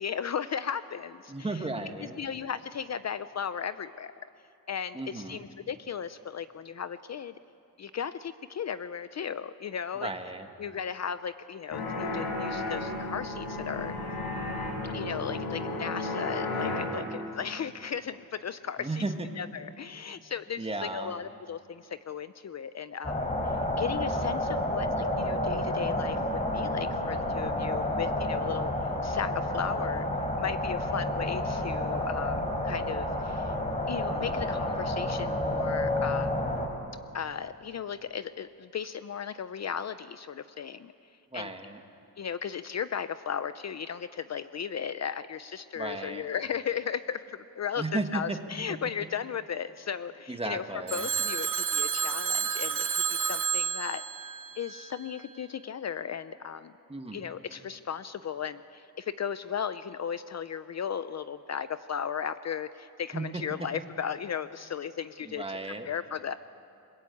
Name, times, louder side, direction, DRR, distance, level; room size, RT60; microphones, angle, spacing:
voice 1, 0.0-1.6 2.2-4.1 4.7-7.3 7.8-10.1 10.6-13.9 14.8-19.0 19.4-33.5 33.9-36.4 37.1-40.9 41.3-41.5 42.2-50.6 50.9-54.0 54.6-56.7 57.1-65.4 65.8-66.4, left 7 dB, 45° left, 13 dB, 0.6 m, -36 dB
voice 2, 1.3-2.2 4.9-5.4 9.9-10.5 18.8-19.3 20.6-21.1 41.3-41.8 45.7-46.3 47.8-48.4 48.7-48.8 50.3-51.1 56.9-57.3 63.1-63.7 65.2-65.9, right 2 dB, 15° right, 5 dB, 1.8 m, -35 dB
sound 1, 11.7-16.9, left 2 dB, 75° left, 7.2 m, -33 dB
sound 2, 23.0-36.7, left 1 dB, 15° left, 4.0 m, -30 dB
Telephone, 50.9-55.1, right 7 dB, 55° right, 2.3 m, -30 dB
29.5 x 22.0 x 8.5 m, 2.7 s
wide cardioid pair, 130°, 38 cm